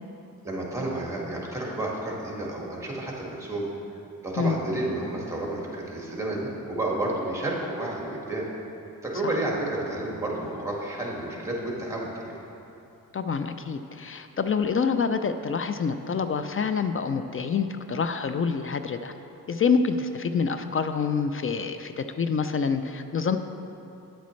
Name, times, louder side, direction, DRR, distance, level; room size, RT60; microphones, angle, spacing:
voice 1, 0.4-3.7 4.2-8.5 9.0-12.4, right 2 dB, 10° right, -3 dB, 1.9 m, -31 dB
voice 2, 13.1-19.1 19.5-23.4, left 5 dB, 40° left, 9 dB, 0.4 m, -27 dB
9.3 x 8.2 x 3.2 m, 2.8 s
cardioid pair, 70°, 35 cm